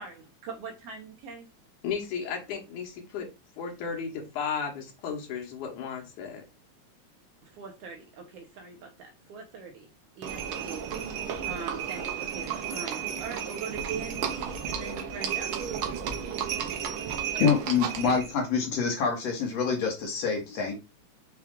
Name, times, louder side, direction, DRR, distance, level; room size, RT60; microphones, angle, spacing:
voice 1, 0.0-1.5 7.4-9.9 10.2-10.9 11.4-15.6, right 4 dB, 70° right, 1.5 m, -42 dB
voice 2, 1.8-3.3 3.6-6.5, left 6 dB, 85° left, 2.6 m, -34 dB
Livestock farm animals working animals, 10.2-18.3, right 8 dB, 85° right, 1.1 m, -33 dB
voice 3, 17.4-20.8, left 6 dB, 65° left, 2.2 m, -26 dB
6.0 x 2.3 x 3.6 m
omnidirectional pair, 3.4 m